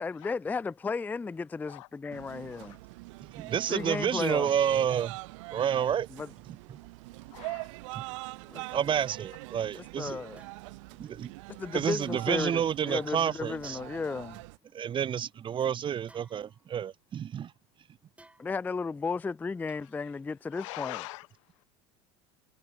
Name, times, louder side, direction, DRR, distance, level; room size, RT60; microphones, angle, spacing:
voice 1, 0.0-2.8 3.7-4.5 6.1-6.3 8.5-8.8 10.0-10.4 11.5-14.4 18.4-21.0, left 4 dB, 10° left, 0.3 m, -34 dB
sound 1, 2.1-14.6, right 25 dB, 80° right, 1.6 m, -43 dB
voice 2, 2.4-2.8 3.7-4.0 7.3-7.7 19.8-20.1 20.5-21.6, left 22 dB, 80° left, 1.3 m, -45 dB
voice 3, 3.3-5.2 5.5-6.1 6.7-6.8 7.9-8.0 8.7-10.2 11.0-11.3 11.7-13.8 14.7-17.5, right 9 dB, 30° right, 0.6 m, -29 dB
sound 2, 3.7-3.8 4.4-4.6 5.4-5.5 6.4-6.5 7.5-7.6 8.7-9.0 10.3-10.8 11.9-12.8 13.6-14.1 14.6-14.7 15.0-15.2 16.1-16.9 18.2-18.8 19.7-20.3 20.6-20.7, right 2 dB, 10° right, 7.2 m, -61 dB
supercardioid pair, 100°, 16 cm